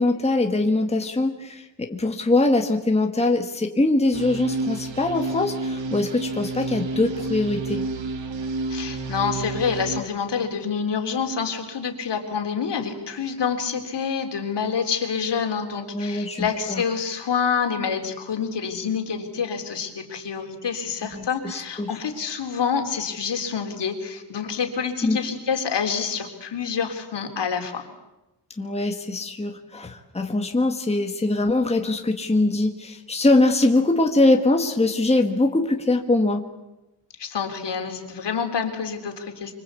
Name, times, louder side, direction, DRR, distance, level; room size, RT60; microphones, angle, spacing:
voice 1, 0.0-7.8 15.9-16.8 21.0-21.9 25.0-25.2 28.6-36.4, left 2 dB, 15° left, 4 dB, 1.6 m, -22 dB
sound 1, 4.1-10.0, right 3 dB, 80° right, 2.1 m, -30 dB
voice 2, 8.7-27.9 37.2-39.5, left 6 dB, 65° left, 4 dB, 3.7 m, -27 dB
26.0 x 25.0 x 8.3 m, 0.98 s
wide cardioid pair, 175°, 44 cm